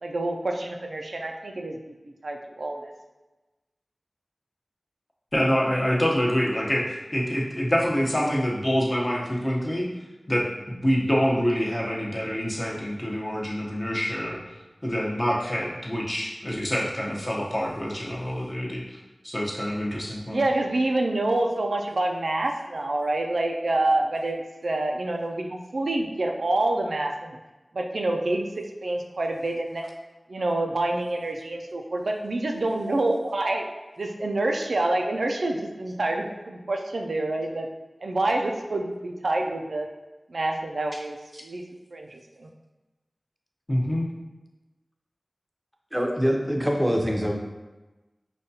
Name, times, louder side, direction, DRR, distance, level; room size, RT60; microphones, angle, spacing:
voice 1, 0.0-1.8 2.2-2.9 20.3-27.4 27.7-29.9 30.3-33.7 34.0-37.7 38.0-39.9 40.3-41.2 41.4-41.6 41.9-42.5, right 2 dB, 90° right, 2 dB, 0.3 m, -27 dB
voice 2, 5.3-9.9 10.3-14.6 14.8-19.0 19.2-20.4 43.7-44.1, equal, 30° left, -3 dB, 0.8 m, -26 dB
voice 3, 45.9-47.3, equal, 5° right, 1 dB, 0.6 m, -24 dB
5.0 x 2.2 x 2.7 m, 1.1 s
wide cardioid pair, 45°, 0 cm